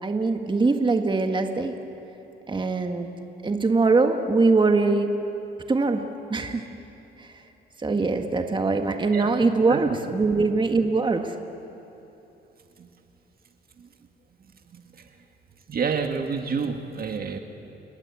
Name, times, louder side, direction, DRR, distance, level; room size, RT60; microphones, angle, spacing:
voice 1, 0.0-1.7 2.5-3.1 3.4-5.1 5.7-6.0 6.3-6.7 7.2-7.3 7.8-11.3, right 3 dB, 25° right, 5 dB, 1.8 m, -22 dB
voice 2, 14.7-15.1 15.7-17.4, right 5 dB, 50° right, 5 dB, 1.9 m, -29 dB
30.0 x 19.5 x 8.6 m, 3.0 s
cardioid pair, 90°, 20 cm